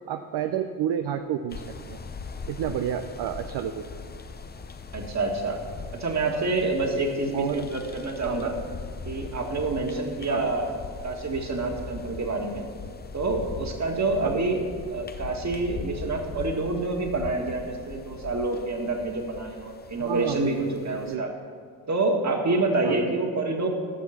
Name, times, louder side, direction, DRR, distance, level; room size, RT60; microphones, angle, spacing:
voice 1, 0.1-2.0 2.5-3.8 7.3-7.6 8.2-8.5 10.3-10.4 14.2-14.4 20.0-20.6 21.0-21.2 22.8-23.0, right 9 dB, 55° right, 7 dB, 0.7 m, -30 dB
sound 1, 1.5-21.2, left 4 dB, 20° left, 0.7 m, -40 dB
voice 2, 4.9-5.6 6.0-8.6 9.1-12.7 13.1-14.6 14.9-21.3 21.9-23.7, right 3 dB, 35° right, 2 dB, 2.0 m, -27 dB
13.0 x 6.3 x 5.9 m, 2.1 s
hypercardioid pair, 50°, 48 cm